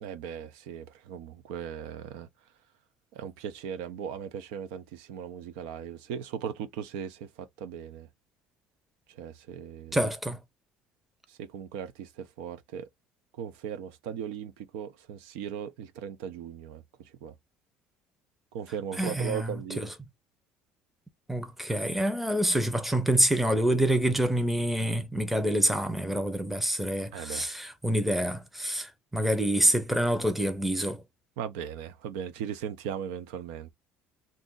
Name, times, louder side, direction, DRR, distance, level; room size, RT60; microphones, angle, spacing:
voice 1, 0.0-2.3 3.1-8.1 9.2-10.1 11.4-12.9 13.4-16.8 17.2-17.3 18.5-19.9 27.1-27.5 31.4-33.7, right 8 dB, 90° right, 0.6 m, -38 dB
voice 2, 9.9-10.4 19.0-19.9 21.3-31.0, right 1 dB, 5° right, 0.6 m, -27 dB
2.7 x 2.4 x 3.8 m
cardioid pair, 115°, 4 cm